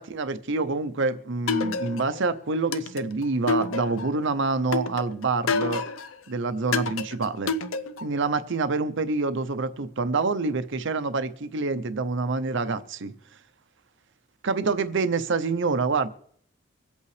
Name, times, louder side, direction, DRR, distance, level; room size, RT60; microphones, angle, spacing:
voice 1, 0.0-5.8 6.3-7.5 8.0-13.1 14.4-16.1, right 3 dB, 65° right, 0.7 m, -26 dB
sound 1, 1.5-2.2 2.7-4.2 4.7-6.1 6.7-8.2, left 4 dB, 90° left, 0.7 m, -28 dB
24.5 x 8.3 x 3.3 m
head